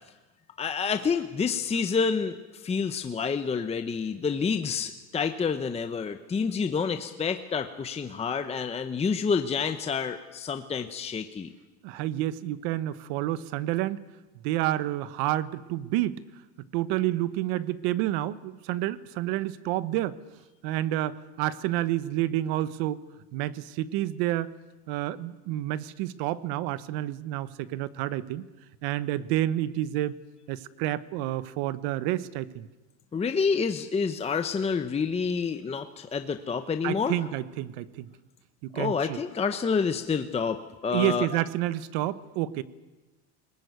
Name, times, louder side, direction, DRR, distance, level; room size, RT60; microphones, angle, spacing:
voice 1, 0.6-11.5 33.1-37.1 38.7-41.3, left 5 dB, 15° left, 8 dB, 0.9 m, -28 dB
voice 2, 11.8-14.0 14.4-16.2 16.7-20.2 20.6-23.0 23.3-24.5 24.9-28.4 28.8-30.2 30.5-32.7 36.8-38.1 38.6-39.2 40.9-42.6, right 14 dB, 75° right, 16 dB, 1.2 m, -29 dB
22.0 x 19.5 x 9.4 m, 1.1 s
cardioid pair, 150°, 38 cm